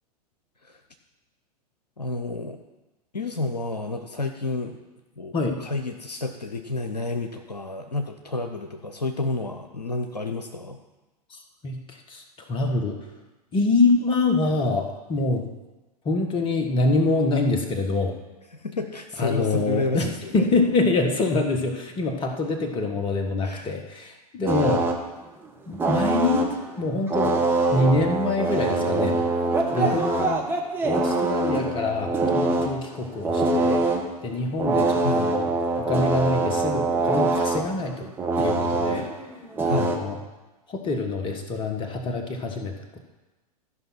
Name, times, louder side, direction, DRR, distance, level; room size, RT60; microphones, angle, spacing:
voice 1, 2.0-2.6 3.1-4.8 5.2-10.8 18.5-20.5 23.4-23.7 29.7-30.1 35.0-35.3 39.6-40.0, left 3 dB, 85° left, 5 dB, 0.8 m, -30 dB
voice 2, 11.3-12.2 12.5-13.0 13.5-15.5 16.0-18.1 19.2-20.1 20.3-24.8 25.7-26.4 26.8-27.5 27.7-29.2 29.7-30.4 30.8-33.9 34.2-35.5 35.8-38.1 38.4-39.1 39.7-40.2 40.7-42.7, left 3 dB, 25° left, 4 dB, 1.5 m, -25 dB
sound 1, 24.5-25.0 25.8-26.6 27.1-32.7 33.1-34.1 34.6-40.0, right 3 dB, 10° right, 1.2 m, -24 dB
13.0 x 5.5 x 5.9 m, 1.1 s
figure-of-eight pair, 95°, 20 cm